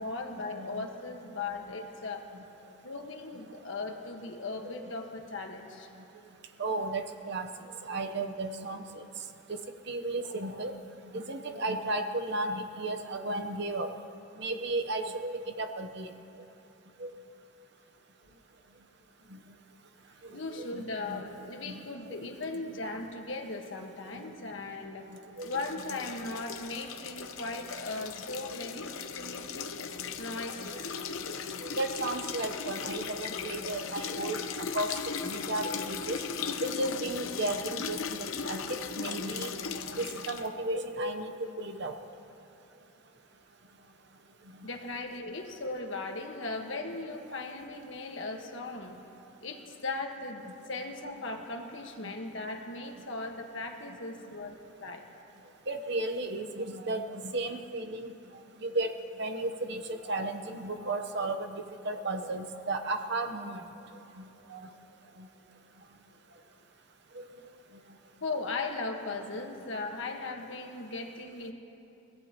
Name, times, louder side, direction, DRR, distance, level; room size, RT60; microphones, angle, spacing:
voice 1, 0.0-2.3 2.8-5.9 20.3-25.1 25.4-29.8 30.2-30.9 44.6-49.0 49.4-55.0 68.2-71.5, left 3 dB, 65° left, 3 dB, 1.5 m, -38 dB
voice 2, 0.5-0.9 2.3-2.4 6.6-7.5 7.8-9.0 9.5-9.6 9.9-10.7 11.1-13.9 14.4-16.1 17.0-17.1 19.3-19.4 20.6-21.3 21.6-22.3 24.1-24.3 25.4-25.5 30.7-30.8 31.6-34.9 35.2-36.2 36.6-38.6 39.0-39.5 39.9-41.3 41.6-41.9 52.0-52.1 55.7-58.1 58.6-58.9 59.2-63.6 64.2-64.7 67.1-67.2, right 2 dB, 55° right, 5 dB, 0.9 m, -34 dB
sound 1, 25.4-40.5, left 6 dB, 85° left, 0.8 m, -37 dB
30.0 x 16.0 x 3.0 m, 2.8 s
head